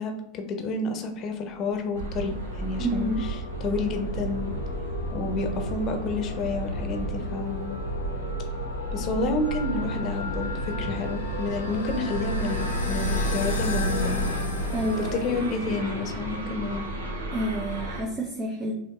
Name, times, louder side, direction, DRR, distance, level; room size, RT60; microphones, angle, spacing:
voice 1, 0.0-3.1 3.6-4.5 5.1-7.8 8.9-14.3 15.0-16.8, left 3 dB, 40° left, 5 dB, 0.7 m, -30 dB
sound 1, 1.6-15.7, left 2 dB, 85° left, 0.8 m, -33 dB
sound 2, 1.9-18.0, right 2 dB, 85° right, 0.8 m, -34 dB
voice 2, 2.8-3.3 14.7-15.4 17.3-18.7, equal, 30° right, 0 dB, 0.6 m, -29 dB
6.1 x 2.3 x 2.3 m, 0.85 s
hypercardioid pair, 90°, 0 cm